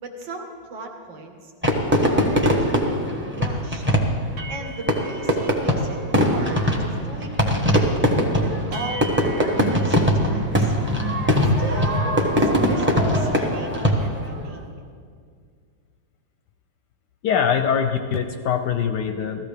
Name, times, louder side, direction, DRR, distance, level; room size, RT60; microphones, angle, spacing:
voice 1, 0.0-1.5 1.9-3.0 3.3-3.8 4.5-7.9 8.4-10.7 11.3-14.6, right 2 dB, 70° right, 3 dB, 2.1 m, -37 dB
Fireworks, 1.6-14.3, equal, 10° right, 0.8 m, -21 dB
sound 1, 3.3-3.6 3.9-4.0 4.4-6.2 6.5-6.9 7.2-7.6 8.1-8.2 8.7-11.3, right 1 dB, 90° right, 2.2 m, -38 dB
voice 2, 17.2-19.5, left 7 dB, 70° left, 6 dB, 1.1 m, -23 dB
16.5 x 14.0 x 3.4 m, 2.1 s
omnidirectional pair, 2.2 m